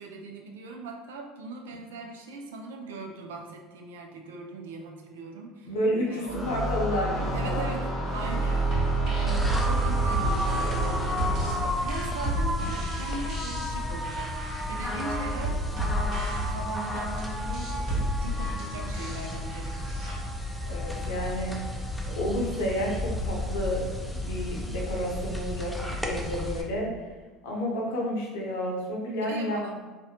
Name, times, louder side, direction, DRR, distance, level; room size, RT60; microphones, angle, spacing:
voice 1, 0.0-5.7 6.1-6.5 7.3-15.6 16.0-19.7 29.3-29.8, right 3 dB, 80° right, 2 dB, 0.3 m, -40 dB
voice 2, 5.6-8.1 20.7-21.8 22.1-23.8 24.1-27.1 27.4-29.6, equal, 75° left, -3 dB, 0.6 m, -31 dB
sound 1, 6.3-12.0, right 3 dB, 20° right, 0.9 m, -29 dB
sound 2, 8.2-20.1, right 1 dB, 55° right, 0.9 m, -33 dB
sound 3, 9.3-26.6, left 1 dB, 5° left, 0.4 m, -32 dB
2.5 x 2.1 x 2.7 m, 1.3 s
hypercardioid pair, 70°, 0 cm